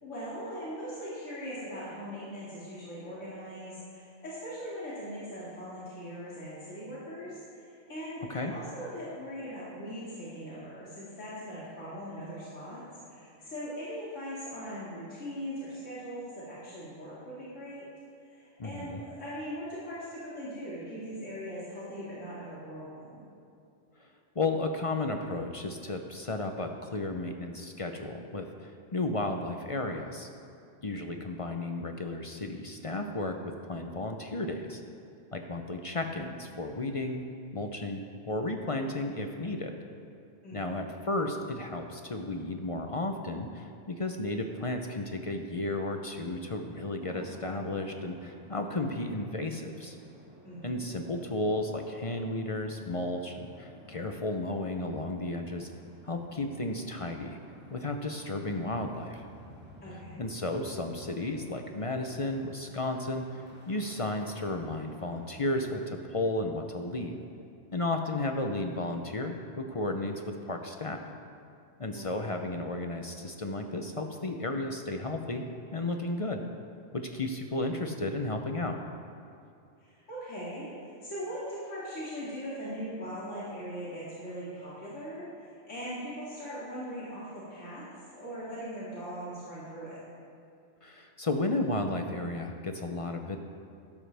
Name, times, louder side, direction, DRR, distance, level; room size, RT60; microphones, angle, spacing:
voice 1, 0.0-17.9 18.2-23.2 40.4-40.9 50.4-50.9 59.8-60.3 71.9-72.1 79.8-87.8 88.1-90.0, equal, 70° left, -9 dB, 2.7 m, -40 dB
voice 2, 18.6-19.0 24.0-24.1 24.3-30.3 30.8-33.4 33.7-34.8 35.3-37.2 37.5-39.7 40.5-50.0 50.6-55.7 56.0-57.4 57.7-59.2 60.2-67.2 67.7-71.0 71.8-75.4 75.7-76.4 76.9-78.8 90.8-93.4, left 2 dB, 35° left, 4 dB, 0.6 m, -33 dB
sound 1, 47.0-65.3, equal, 10° right, 1.4 m, -53 dB
12.5 x 12.0 x 3.4 m, 2.6 s
omnidirectional pair, 1.3 m